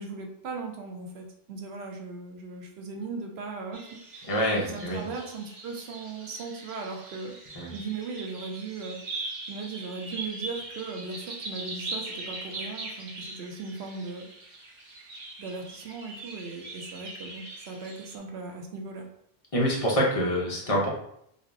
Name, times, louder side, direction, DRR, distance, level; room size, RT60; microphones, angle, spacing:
voice 1, 0.0-4.3 4.6-9.0 9.5-14.3 15.4-19.1, right 4 dB, 90° right, 2 dB, 0.9 m, -38 dB
sound 1, 3.7-18.2, right 2 dB, 50° right, 0.7 m, -41 dB
voice 2, 4.3-5.1 7.6-7.7 19.5-20.9, equal, 35° left, -3 dB, 0.8 m, -26 dB
5.3 x 2.1 x 2.6 m, 0.72 s
omnidirectional pair, 1.0 m